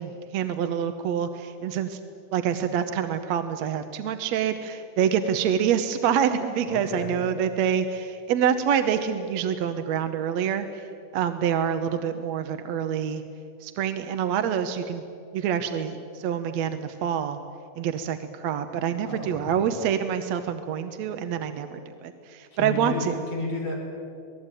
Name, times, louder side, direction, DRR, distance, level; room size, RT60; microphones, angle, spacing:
voice 1, 0.0-2.0 2.3-10.9 11.1-13.2 13.6-15.0 15.3-17.4 17.8-23.1, right 8 dB, 65° right, 8 dB, 1.9 m, -26 dB
voice 2, 6.7-7.2 19.0-19.6 22.5-23.8, left 2 dB, 50° left, -2 dB, 7.2 m, -32 dB
27.5 x 19.5 x 9.0 m, 2.5 s
omnidirectional pair, 3.8 m